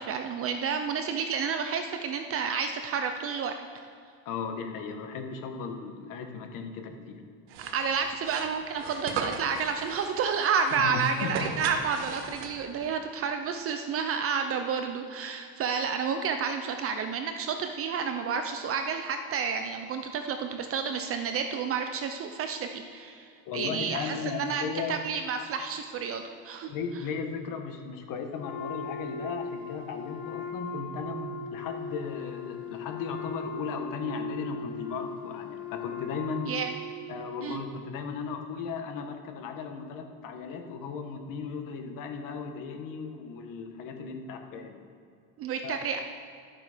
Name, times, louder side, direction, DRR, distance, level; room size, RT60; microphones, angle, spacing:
voice 1, 0.0-3.5 7.7-26.7 36.4-36.7 37.4-37.6 45.4-46.0, right 6 dB, 35° right, 6 dB, 0.5 m, -30 dB
voice 2, 4.2-7.2 10.8-11.5 23.5-25.0 26.7-36.5 37.1-44.8 45.6-45.8, left 5 dB, 50° left, 5 dB, 1.3 m, -36 dB
sound 1, 7.5-12.8, right 6 dB, 80° right, 1.4 m, -38 dB
Wind instrument woodwind instrument, 28.4-37.2, left 3 dB, 25° left, 0.9 m, -38 dB
12.0 x 7.5 x 5.0 m, 2.5 s
cardioid pair, 155°, 43 cm